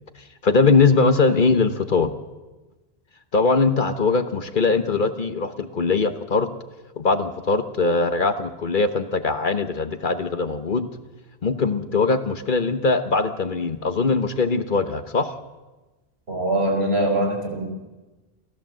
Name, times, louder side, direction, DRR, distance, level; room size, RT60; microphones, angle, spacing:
voice 1, 0.4-2.1 3.3-6.5 7.0-10.9 11.4-15.3, left 4 dB, 50° left, 10 dB, 1.2 m, -21 dB
voice 2, 16.3-17.6, right 1 dB, 75° right, 1 dB, 5.1 m, -22 dB
29.5 x 14.0 x 7.6 m, 1.2 s
omnidirectional pair, 1.1 m